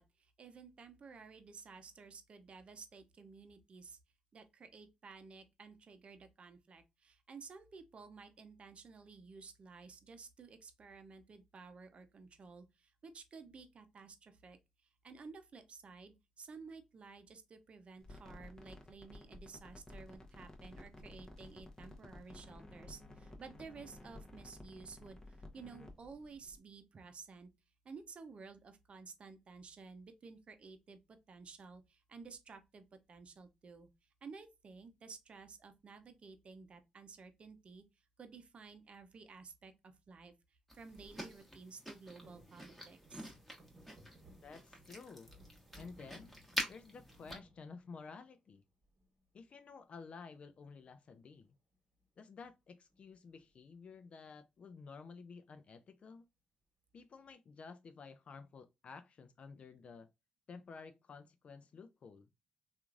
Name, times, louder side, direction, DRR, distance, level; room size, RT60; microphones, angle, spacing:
voice 1, 0.0-4.0 4.3-14.6 15.0-27.5 27.8-31.0 31.3-33.9 34.2-37.8 38.2-40.3 40.7-43.3, right 4 dB, 50° right, 0.6 m, -54 dB
sound 1, 18.0-26.6, left 2 dB, 25° left, 0.8 m, -54 dB
sound 2, 40.7-47.4, equal, 5° left, 1.2 m, -46 dB
sound 3, 42.2-48.4 48.8-49.4 50.7-51.1 51.4-51.5 51.7-52.1 52.9-53.8 54.3-54.4, equal, 30° right, 1.3 m, -62 dB
voice 2, 44.4-45.3 45.8-46.4 46.7-48.6 49.3-51.5 52.2-56.3 56.9-60.1 60.5-62.3, left 5 dB, 55° left, 0.3 m, -53 dB
3.0 x 2.4 x 2.4 m
supercardioid pair, 60°, 3 cm